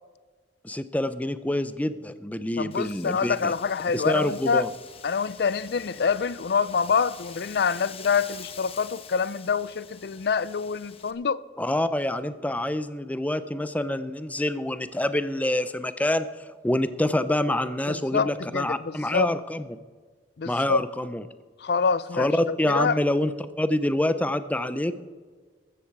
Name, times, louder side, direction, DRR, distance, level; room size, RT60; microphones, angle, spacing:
voice 1, 0.6-3.5 3.9-4.7 11.6-16.3 16.6-19.6 20.4-21.2 22.2-23.3 23.6-24.9, left 1 dB, 10° left, 0.6 m, -26 dB
voice 2, 2.6-4.6 5.0-11.4 17.9-19.3 20.4-20.8 21.6-23.0, left 5 dB, 65° left, 0.5 m, -26 dB
Wind, 2.7-11.1, left 7 dB, 35° left, 1.0 m, -46 dB
14.5 x 13.5 x 4.7 m
head